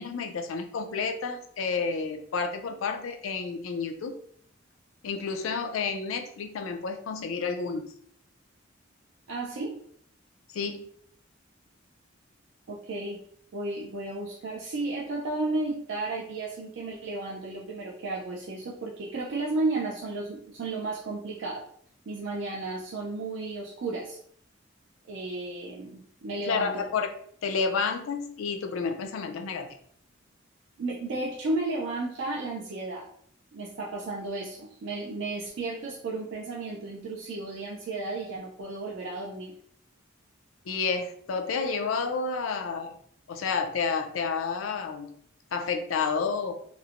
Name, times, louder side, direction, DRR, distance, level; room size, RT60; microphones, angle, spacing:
voice 1, 0.0-4.2 5.0-7.9 10.5-10.9 26.5-27.1 27.4-29.7 40.7-42.9 43.3-45.1 45.5-46.5, left 5 dB, 90° left, 6 dB, 0.4 m, -30 dB
voice 2, 9.3-9.8 12.7-13.2 13.5-21.7 22.1-24.2 25.1-26.8 30.8-33.1 33.5-39.6, right 2 dB, 65° right, -3 dB, 0.4 m, -33 dB
3.0 x 2.1 x 2.4 m, 0.63 s
head